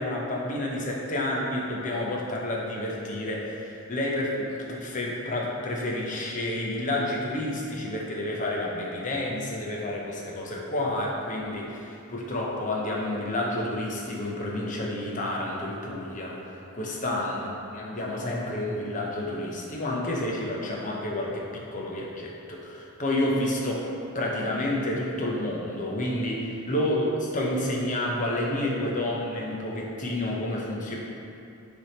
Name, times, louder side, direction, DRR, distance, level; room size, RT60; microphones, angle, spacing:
voice 1, 0.0-23.9 24.1-31.0, left 1 dB, 35° left, -3 dB, 0.8 m, -30 dB
6.7 x 3.5 x 4.3 m, 2.7 s
head